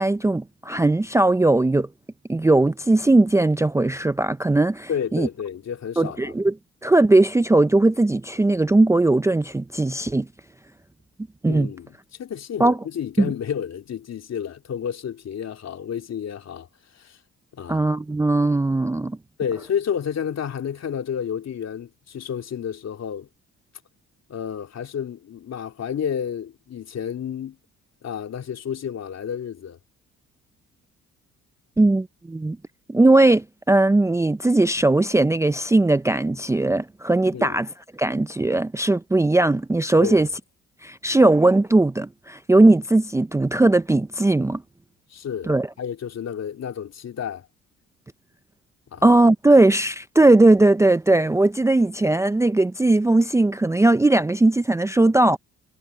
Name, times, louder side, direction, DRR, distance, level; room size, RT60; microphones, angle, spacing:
voice 1, 0.0-1.9 2.3-5.3 6.0-6.5 6.8-10.3 11.4-11.7 12.6-12.8 13.2-13.3 17.7-19.2 31.8-32.6 32.9-40.3 40.8-44.6 45.5-45.7 49.0-55.4, right 2 dB, 10° right, 0.5 m, -19 dB
voice 2, 4.9-6.3 11.5-16.7 16.9-17.2 17.5-17.8 19.4-23.3 24.3-27.6 28.0-29.8 37.3-37.6 40.0-40.3 45.1-47.5 48.9-49.0, left 8 dB, 60° left, 3.3 m, -31 dB
cardioid pair, 90°, 30 cm